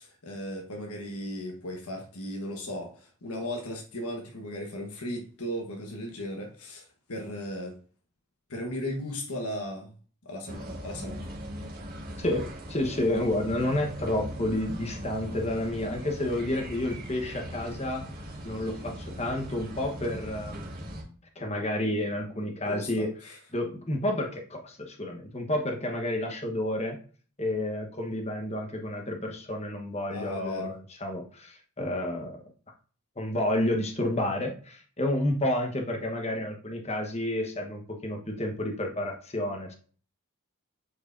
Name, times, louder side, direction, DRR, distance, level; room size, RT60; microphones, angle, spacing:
voice 1, 0.0-7.7 8.5-9.9 10.2-11.2 22.6-23.4 30.1-30.7, equal, 90° left, 1 dB, 1.2 m, -36 dB
sound 1, 10.5-21.0, equal, 40° right, 1.7 m, -40 dB
voice 2, 12.2-18.0 18.4-20.7 21.4-23.1 23.5-27.0 27.4-32.4 33.2-39.7, left 1 dB, 30° left, 3 dB, 1.1 m, -30 dB
8.2 x 4.7 x 2.6 m, 0.42 s
head